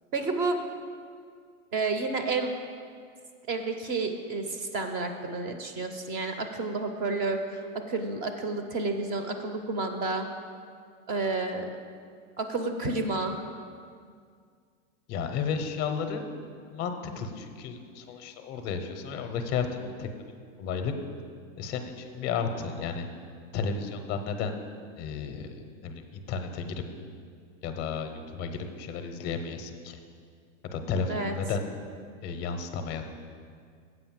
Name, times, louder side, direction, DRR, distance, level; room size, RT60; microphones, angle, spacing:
voice 1, 0.1-0.6 1.7-2.6 3.5-10.3 11.1-11.7 12.4-13.4 31.1-31.3, right 3 dB, 25° right, 6 dB, 0.5 m, -30 dB
voice 2, 15.1-16.3 16.7-20.1 20.6-20.9 21.6-23.0 23.5-24.5 25.0-25.5 25.8-26.8 27.6-30.0 30.6-31.6 32.2-33.0, left 5 dB, 25° left, 7 dB, 0.6 m, -33 dB
7.9 x 5.3 x 7.3 m, 2.1 s
supercardioid pair, 150°, 39 cm